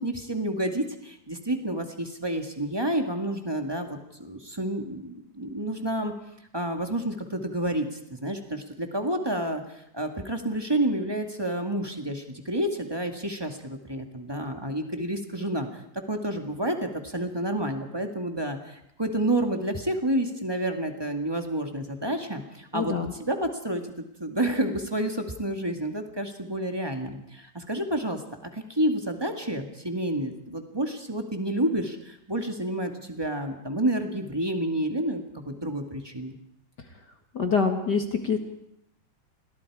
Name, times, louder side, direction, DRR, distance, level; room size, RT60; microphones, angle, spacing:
voice 1, 0.0-6.1 6.5-15.8 16.1-22.9 23.2-23.8 24.2-36.4, right 1 dB, 10° right, 4 dB, 1.2 m, -29 dB
voice 2, 22.7-23.1 37.3-38.4, left 5 dB, 40° left, 5 dB, 1.7 m, -25 dB
29.5 x 21.5 x 4.9 m, 0.79 s
omnidirectional pair, 4.0 m